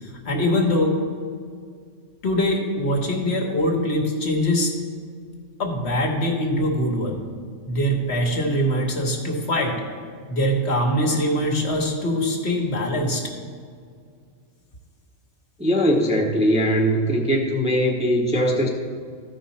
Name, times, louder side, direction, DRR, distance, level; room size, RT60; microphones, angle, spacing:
voice 1, 0.0-1.0 2.2-4.7 5.6-7.2 7.7-9.8 10.3-13.2, equal, 60° left, 1 dB, 1.4 m, -23 dB
voice 2, 15.6-18.7, equal, 5° right, -2 dB, 0.8 m, -20 dB
14.0 x 5.4 x 4.2 m, 2.1 s
omnidirectional pair, 1.3 m